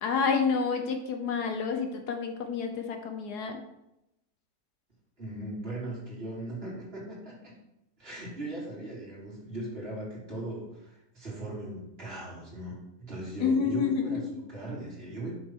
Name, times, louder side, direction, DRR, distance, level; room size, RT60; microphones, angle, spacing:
voice 1, 0.0-3.6 13.4-14.4, left 5 dB, 75° left, 5 dB, 1.5 m, -29 dB
voice 2, 5.2-7.5 8.0-14.2 14.5-15.4, right 1 dB, 35° right, -6 dB, 3.7 m, -39 dB
7.5 x 6.5 x 4.7 m, 0.88 s
omnidirectional pair, 1.8 m